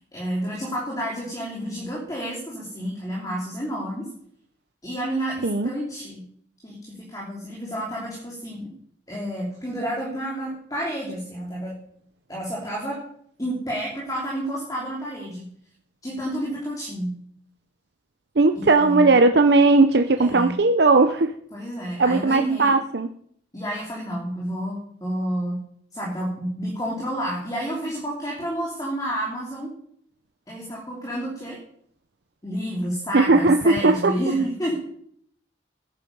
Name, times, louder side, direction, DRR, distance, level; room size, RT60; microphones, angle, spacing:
voice 1, 0.1-4.1 4.8-6.2 6.6-8.7 9.1-11.7 12.3-13.0 13.4-15.4 16.0-17.1 18.5-19.1 20.2-20.5 21.5-22.7 23.5-25.6 25.9-29.7 30.5-31.6 32.4-34.8, right 1 dB, 20° left, -4 dB, 3.1 m, -30 dB
voice 2, 18.4-21.3 22.0-23.1 33.1-34.1, right 3 dB, 60° right, 7 dB, 0.7 m, -18 dB
16.0 x 10.0 x 5.4 m, 0.65 s
head